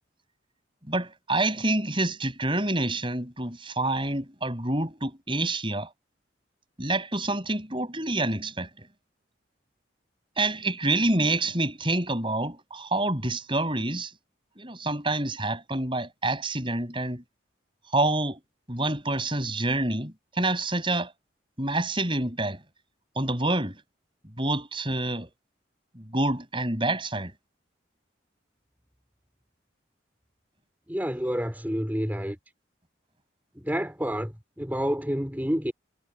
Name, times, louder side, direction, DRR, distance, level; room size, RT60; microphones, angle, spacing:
voice 1, 0.9-5.9 6.8-8.9 10.4-14.1 14.6-17.2 17.9-18.4 18.7-21.1 21.6-22.6 23.2-23.8 24.4-25.3 25.9-27.3, right 2 dB, 25° right, 7.7 m, -27 dB
voice 2, 30.9-32.4 33.6-35.7, equal, 10° right, 4.3 m, -29 dB
head